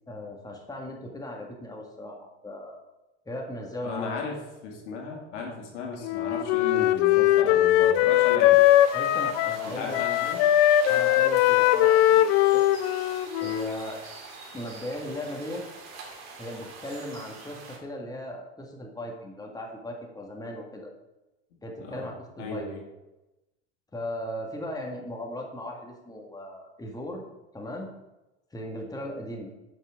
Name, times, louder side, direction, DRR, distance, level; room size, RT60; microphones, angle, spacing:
voice 1, 0.1-2.8 3.3-4.2 8.9-10.0 10.2-10.3 10.9-12.8 13.4-14.0 14.5-15.6 16.4-20.9 21.6-22.7 23.9-27.2 27.5-27.9 28.5-29.5, left 1 dB, 10° left, 0 dB, 1.8 m, -37 dB
voice 2, 3.8-8.6 9.6-10.5 21.8-22.1 22.4-22.8, left 4 dB, 80° left, 1 dB, 2.0 m, -35 dB
Wind instrument woodwind instrument, 6.0-9.7 9.9-13.9, left 13 dB, 60° left, 0.5 m, -21 dB
sound 1, 8.5-17.8, right 4 dB, 50° right, 2.6 m, -44 dB
9.1 x 6.2 x 3.6 m, 1.0 s
hypercardioid pair, 90°, 35 cm